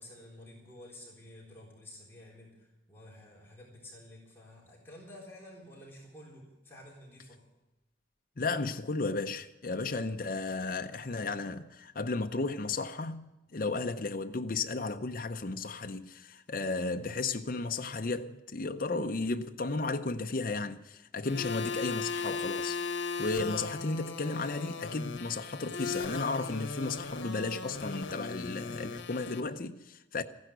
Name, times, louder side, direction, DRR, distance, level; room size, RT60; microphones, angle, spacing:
voice 1, 0.0-7.4, left 1 dB, 10° left, 3.8 m, -51 dB
voice 2, 8.4-22.8 23.2-30.2, left 3 dB, 50° left, 0.6 m, -34 dB
sound 1, 21.2-29.4, left 4 dB, 80° left, 1.2 m, -37 dB
15.0 x 10.5 x 8.0 m
head